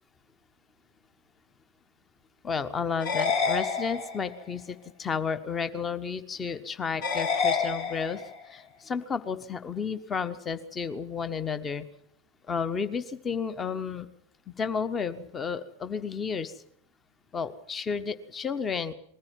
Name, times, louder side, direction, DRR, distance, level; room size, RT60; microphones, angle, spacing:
voice 1, 2.4-11.9 12.5-14.1 14.6-16.5 17.3-18.9, left 6 dB, 20° left, 12 dB, 1.2 m, -32 dB
sound 1, 3.0-4.4 7.0-8.4, left 5 dB, 45° left, 3.2 m, -28 dB
21.0 x 14.5 x 9.2 m, 0.69 s
figure-of-eight pair, 90°, 0 cm